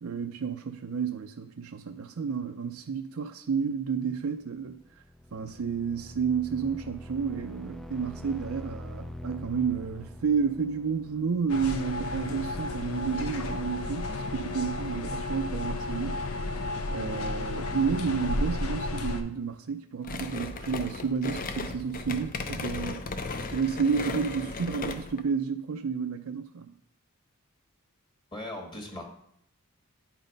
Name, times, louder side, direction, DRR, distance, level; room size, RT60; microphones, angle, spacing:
voice 1, 0.0-4.8 5.3-16.6 16.9-23.0 23.5-26.7, right 6 dB, 70° right, 0.5 m, -31 dB
sound 1, 4.6-12.3, left 1 dB, ahead, 0.3 m, -44 dB
sound 2, 11.5-19.2, left 2 dB, 80° left, 0.8 m, -32 dB
sound 3, 20.0-25.2, left 3 dB, 40° left, 0.6 m, -36 dB
voice 2, 28.3-29.0, left 1 dB, 20° left, 1.3 m, -38 dB
9.6 x 4.1 x 5.1 m
head